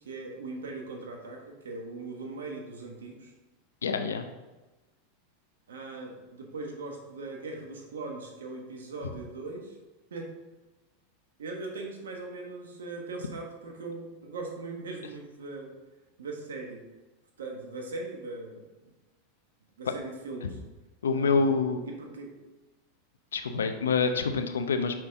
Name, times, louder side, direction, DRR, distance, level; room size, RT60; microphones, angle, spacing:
voice 1, 0.0-3.3 5.7-9.8 10.1-10.3 11.4-15.7 16.2-16.8 17.4-18.7 19.8-20.6 21.1-22.3, right 3 dB, 85° right, 1 dB, 1.4 m, -40 dB
voice 2, 3.8-4.3 9.0-9.1 21.0-21.8 23.3-24.9, left 5 dB, 90° left, 7 dB, 0.7 m, -26 dB
6.1 x 5.7 x 3.6 m, 1.2 s
hypercardioid pair, 105°, 0 cm